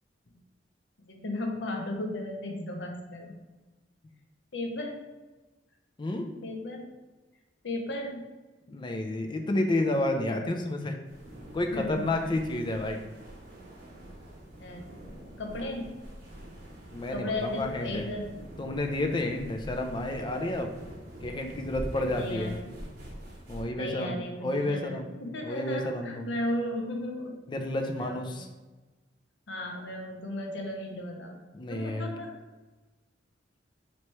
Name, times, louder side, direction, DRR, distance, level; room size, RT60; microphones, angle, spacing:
voice 1, 1.0-3.3 4.5-5.0 6.4-6.9 7.6-8.2 11.7-12.3 14.6-16.0 17.1-18.3 22.1-22.7 23.7-27.4 28.0-28.4 29.5-32.3, left 1 dB, 70° left, 2 dB, 0.7 m, -35 dB
voice 2, 8.7-10.9 11.5-13.0 16.9-18.1 18.6-20.8 21.2-22.6 23.5-25.1 25.4-26.3 27.5-28.5 31.5-32.1, left 1 dB, 25° left, 3 dB, 0.4 m, -30 dB
sound 1, 11.0-23.6, equal, 55° right, 1.0 m, -45 dB
3.1 x 2.9 x 4.5 m, 1.2 s
head